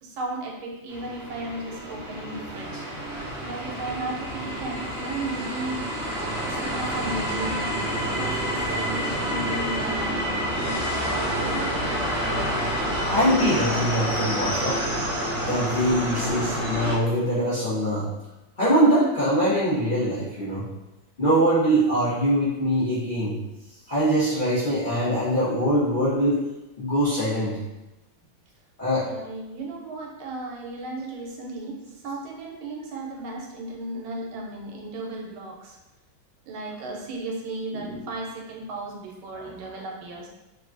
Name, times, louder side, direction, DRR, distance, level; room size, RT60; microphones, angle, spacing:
voice 1, 0.0-5.8 6.4-7.6 8.0-10.4 10.7-12.0 20.4-20.6 29.0-35.8 36.5-40.3, right 2 dB, 85° right, -1 dB, 1.5 m, -35 dB
sound 1, 0.9-17.0, equal, 60° right, 0.9 m, -28 dB
voice 2, 13.0-14.8 15.5-18.1 18.6-20.7 21.2-23.3 23.9-26.4 26.8-27.6 28.8-29.1 39.3-39.5, equal, 75° left, -12 dB, 0.4 m, -23 dB
3.5 x 2.3 x 2.4 m, 1.0 s
omnidirectional pair, 2.2 m